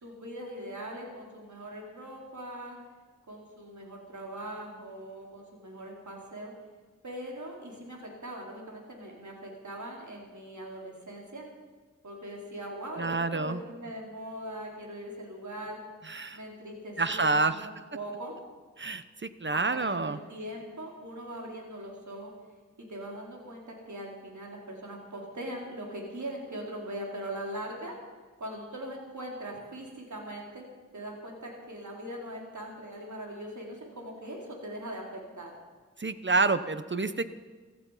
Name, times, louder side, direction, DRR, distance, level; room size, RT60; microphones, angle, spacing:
voice 1, 0.0-2.8 3.3-6.5 7.0-11.4 12.0-15.8 16.3-18.3 19.5-22.3 22.9-28.0 28.4-30.7 30.9-35.5, right 1 dB, 70° right, -1 dB, 4.0 m, -41 dB
voice 2, 13.0-13.6 16.0-16.4 17.0-17.5 18.8-20.2 36.0-37.2, right 3 dB, 40° right, 12 dB, 1.0 m, -28 dB
15.5 x 14.5 x 5.7 m, 1.4 s
cardioid pair, 40°, 30 cm